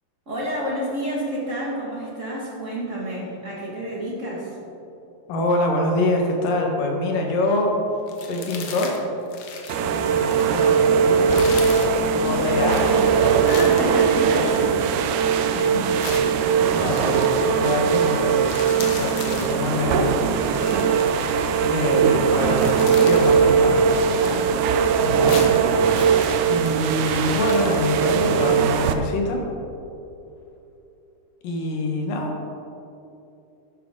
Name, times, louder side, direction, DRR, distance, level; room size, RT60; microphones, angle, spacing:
voice 1, 0.2-4.6 11.6-15.7 16.2-17.4 17.6-18.0 24.0-24.7, equal, 30° right, -5 dB, 1.5 m, -30 dB
voice 2, 5.3-7.8 8.2-8.9 10.1-11.3 12.2-12.8 13.1-13.6 15.5-16.0 16.7-20.2 21.6-23.9 25.0-25.5 26.5-29.4 31.4-32.3, left 2 dB, 80° left, 1 dB, 3.0 m, -25 dB
sound 1, 8.1-9.0 9.3-10.7 11.2-12.0 12.6-15.3 16.0-17.5 17.9-18.0 18.3-19.6 20.3-22.0 22.3-23.5 23.8-24.9 25.1-27.8, left 5 dB, 65° left, 1.8 m, -37 dB
sound 2, 9.7-28.9, right 6 dB, 75° right, 1.9 m, -20 dB
11.5 x 10.0 x 3.8 m, 2.8 s
omnidirectional pair, 3.8 m